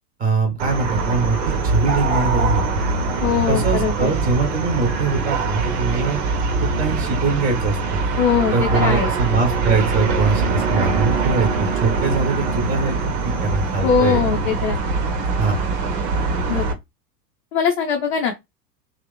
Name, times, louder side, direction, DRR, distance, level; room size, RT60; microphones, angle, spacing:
voice 1, 0.2-2.6 3.5-6.2 6.6-8.0 8.5-14.2 15.4-15.6, right 4 dB, 15° right, 1.1 m, -22 dB
sound 1, 0.6-16.7, right 3 dB, 45° right, 0.8 m, -22 dB
voice 2, 3.2-4.1 8.2-9.1 13.8-14.8 16.5-16.7 17.5-18.3, left 6 dB, 40° left, 0.6 m, -21 dB
2.8 x 2.0 x 2.2 m
figure-of-eight pair, 90°, 49 cm